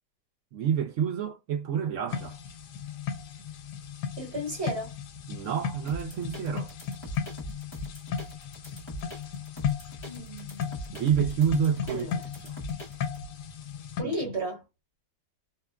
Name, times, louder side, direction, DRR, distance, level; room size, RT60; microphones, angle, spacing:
voice 1, 0.5-2.4 5.3-6.7 10.9-12.1 12.4-12.6 14.0-14.1, right 8 dB, 60° right, 0.8 m, -28 dB
sound 1, 2.1-14.0, left 7 dB, 80° left, 1.2 m, -36 dB
voice 2, 4.2-4.9 10.1-10.7 11.9-12.1 14.0-14.6, right 1 dB, 45° right, 1.4 m, -33 dB
sound 2, 5.9-13.2, equal, 25° left, 0.6 m, -41 dB
2.9 x 2.1 x 2.2 m
omnidirectional pair, 1.8 m